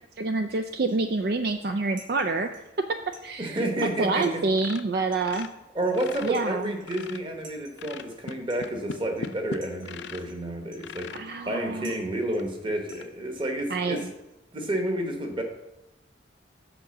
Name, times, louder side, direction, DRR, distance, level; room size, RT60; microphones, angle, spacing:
voice 1, 0.2-2.9 3.2-5.5 6.2-6.7 11.1-12.0 13.7-14.1, right 3 dB, 55° right, 7 dB, 0.4 m, -27 dB
sound 1, 0.9-14.5, right 1 dB, 90° right, 2.6 m, -56 dB
voice 2, 3.4-4.4 5.7-14.1 14.5-15.4, right 1 dB, 25° right, 4 dB, 1.2 m, -30 dB
sound 2, 4.5-6.4 6.7-7.3 7.8-10.3 10.8-11.3 11.9-12.0 12.4-12.5 12.9-13.1, left 5 dB, 70° left, 0.5 m, -39 dB
8.1 x 4.9 x 7.0 m, 0.96 s
head